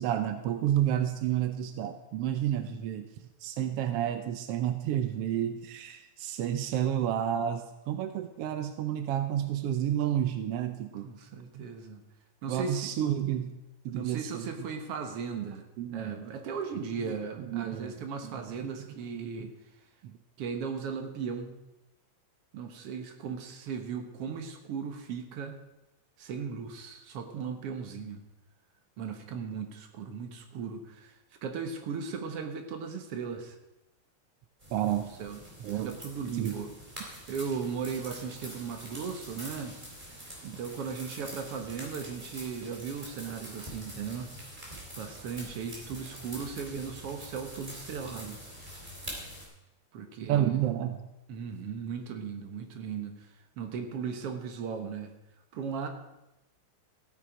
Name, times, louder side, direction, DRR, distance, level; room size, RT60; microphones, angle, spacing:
voice 1, 0.0-11.1 11.5-11.6 12.5-13.6 13.8-14.5 15.8-16.2 17.0-17.9 18.2-18.9 19.4-19.5 20.0-20.2 34.7-35.1 35.6-36.0 36.3-36.6 50.2-51.1, right 11 dB, 75° right, 8 dB, 1.4 m, -31 dB
voice 2, 11.0-12.0 12.4-12.9 13.9-19.5 20.4-21.5 22.5-25.6 26.2-28.2 29.0-33.6 35.2-35.4 35.8-36.7 37.3-39.8 40.4-44.3 45.0-48.4 49.9-50.6 51.3-53.3 53.6-55.1 55.5-55.9, right 6 dB, 60° right, 5 dB, 2.0 m, -37 dB
sound 1, 34.6-49.4, right 1 dB, 15° right, 3.6 m, -45 dB
15.0 x 9.1 x 5.0 m, 0.95 s
omnidirectional pair, 3.4 m